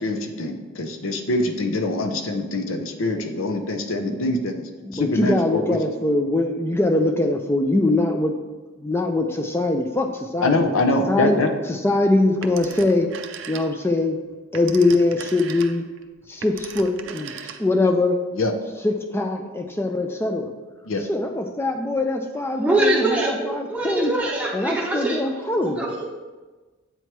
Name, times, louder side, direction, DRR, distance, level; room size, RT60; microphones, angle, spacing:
voice 1, 0.0-5.8 10.4-11.5 18.3-18.5 20.8-21.0, left 2 dB, 70° left, 6 dB, 0.6 m, -24 dB
voice 2, 4.1-4.4 4.8-8.3 8.8-10.6 11.1-11.4 11.7-13.1 13.5-14.2 14.5-15.8 16.3-18.2 18.8-20.5 21.1-24.1 24.5-25.9, left 2 dB, 10° left, 5 dB, 0.4 m, -22 dB
Telephone, 12.4-14.0 14.3-17.9, right 7 dB, 60° right, 0.4 m, -38 dB
voice 3, 22.6-25.2 25.8-26.0, right 2 dB, 5° right, -4 dB, 0.9 m, -23 dB
8.0 x 3.0 x 4.6 m, 1.3 s
head